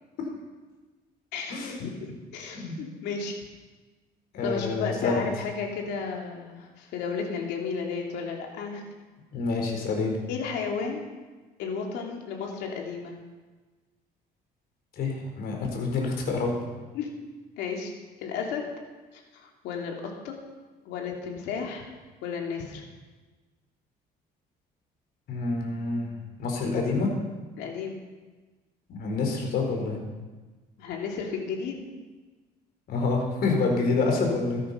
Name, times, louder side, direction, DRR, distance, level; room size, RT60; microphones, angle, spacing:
voice 1, 1.3-3.4 4.4-8.8 10.3-11.0 11.6-13.2 16.9-17.1 17.6-17.9 18.2-18.7 19.1-20.4 20.8-21.9 22.2-22.8 27.6-28.0 30.8-31.9, left 5 dB, 85° left, 1 dB, 2.9 m, -33 dB
voice 2, 4.3-5.1 9.3-10.1 15.0-16.6 25.3-26.1 26.4-27.1 28.9-30.0 32.9-34.6, left 3 dB, 65° left, 1 dB, 4.4 m, -27 dB
15.5 x 13.0 x 5.7 m, 1.3 s
cardioid pair, 110°, 17 cm